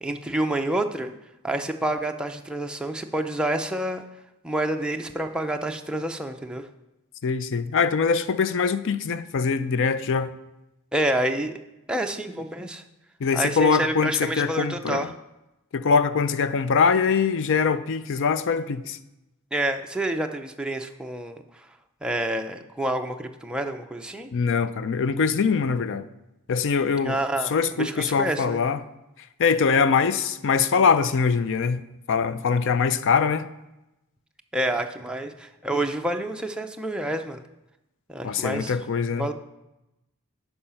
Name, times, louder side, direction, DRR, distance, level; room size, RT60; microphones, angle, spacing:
voice 1, 0.0-1.1 1.4-4.0 4.4-6.6 10.9-11.5 11.9-12.8 13.3-15.1 19.5-21.4 22.0-24.3 27.0-27.5 27.8-28.6 34.5-37.4 38.1-38.7 39.2-39.3, right 1 dB, 5° right, 0.5 m, -28 dB
voice 2, 7.2-10.3 13.2-15.1 15.7-19.0 24.3-26.0 26.5-27.2 27.4-28.8 29.4-31.8 32.1-33.5 38.2-39.3, left 5 dB, 60° left, 0.5 m, -23 dB
8.7 x 5.5 x 5.6 m
head